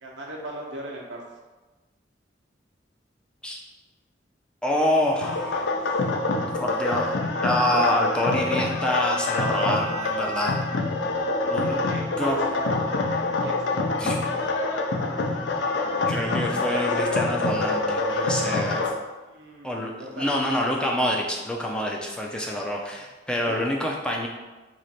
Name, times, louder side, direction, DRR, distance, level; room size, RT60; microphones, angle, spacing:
voice 1, 0.0-1.2 11.4-12.9 13.4-14.1 18.3-20.4 22.9-23.0 23.5-23.7 24.2-24.3, right 1 dB, 80° right, -1 dB, 0.8 m, -39 dB
voice 2, 4.6-5.7 6.5-7.2 7.4-10.6 11.5-11.7 12.2-12.4 14.0-14.2 15.2-15.7 16.1-18.8 19.6-24.3, left 1 dB, 5° left, -1 dB, 0.4 m, -26 dB
sound 1, 5.2-18.9, left 2 dB, 75° left, 0.4 m, -26 dB
3.1 x 2.4 x 4.0 m, 1.2 s
head